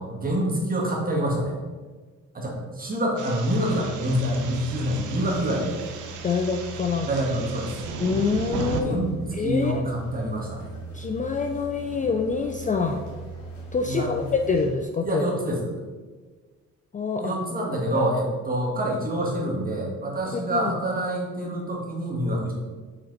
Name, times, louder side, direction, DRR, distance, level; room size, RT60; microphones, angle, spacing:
voice 1, 0.0-1.6 2.3-5.8 7.1-7.8 8.7-10.7 13.8-14.1 15.0-15.7 17.2-22.5, right 1 dB, 30° right, -2 dB, 1.8 m, -26 dB
sound 1, 3.2-8.8, right 5 dB, 80° right, 0.8 m, -36 dB
sound 2, 3.7-14.8, right 3 dB, 75° left, 1.7 m, -40 dB
voice 2, 6.2-7.1 8.0-9.0 9.4-9.8 10.9-13.0 13.7-15.2 16.9-17.3 17.9-18.2 20.3-20.7, left 5 dB, 25° left, 4 dB, 0.4 m, -26 dB
5.9 x 4.2 x 4.0 m, 1.4 s
cardioid pair, 90°, 30 cm